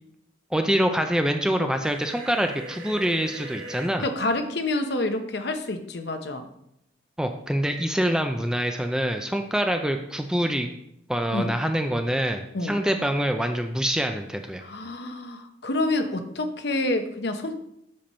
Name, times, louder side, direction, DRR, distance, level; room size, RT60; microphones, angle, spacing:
voice 1, 0.5-4.1 7.2-10.7 11.1-14.6, equal, 5° right, 5 dB, 0.4 m, -25 dB
sound 1, 1.8-3.9, right 2 dB, 80° right, 1.7 m, -40 dB
voice 2, 4.0-6.5 11.3-11.5 12.5-12.8 14.6-17.6, left 2 dB, 55° left, 7 dB, 0.9 m, -28 dB
7.6 x 7.0 x 4.3 m, 0.79 s
head